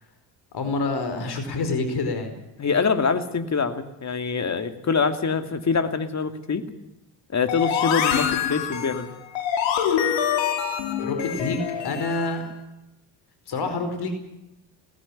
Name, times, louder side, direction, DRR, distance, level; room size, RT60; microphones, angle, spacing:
voice 1, 0.5-2.3 11.0-12.5 13.5-14.1, left 3 dB, 50° left, 8 dB, 4.8 m, -27 dB
voice 2, 2.6-6.6 7.3-9.1, left 5 dB, 35° left, 9 dB, 2.7 m, -24 dB
sound 1, 7.5-12.4, left 8 dB, 70° left, 2.9 m, -25 dB
19.0 x 15.5 x 10.0 m, 0.91 s
hypercardioid pair, 60°, 48 cm